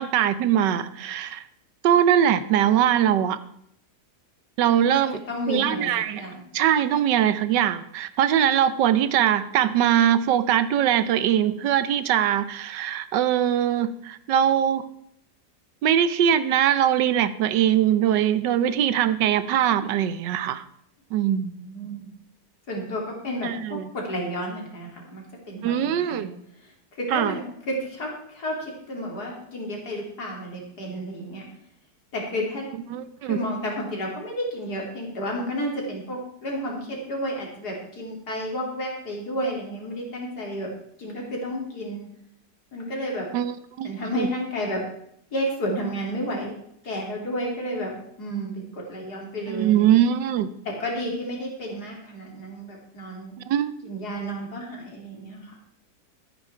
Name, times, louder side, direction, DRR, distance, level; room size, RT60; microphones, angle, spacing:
voice 1, 0.0-1.4 1.8-3.4 4.6-5.2 5.5-6.2 6.5-14.8 15.8-20.6 21.1-21.5 23.4-23.9 25.6-26.3 27.1-27.3 32.9-33.4 43.3-43.9 44.2-44.3 49.5-50.5 53.5-53.7, right 10 dB, 85° right, 13 dB, 1.4 m, -22 dB
voice 2, 4.9-6.4 21.2-22.1 22.7-31.5 32.1-32.7 33.2-42.1 42.7-43.3 43.8-44.8 45.3-46.6 46.8-50.0 50.7-53.4 53.8-55.5, equal, 65° left, -1 dB, 3.5 m, -32 dB
13.0 x 9.6 x 4.4 m, 0.71 s
omnidirectional pair, 1.8 m